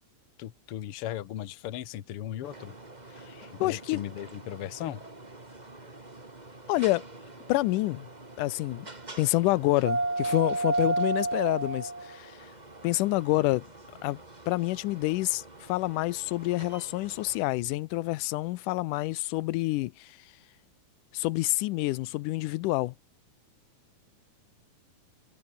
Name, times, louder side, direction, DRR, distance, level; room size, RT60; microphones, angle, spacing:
voice 1, 0.4-2.8 3.5-5.0, left 12 dB, 55° left, 1.8 m, -37 dB
sound 1, 2.4-17.4, right 2 dB, 15° right, 2.4 m, -36 dB
voice 2, 3.3-4.0 6.7-7.1 7.5-8.1 8.4-8.9 9.2-12.5 12.8-13.6 14.0-14.2 14.5-20.2 21.1-22.9, left 19 dB, 90° left, 2.2 m, -28 dB
omnidirectional pair, 3.6 m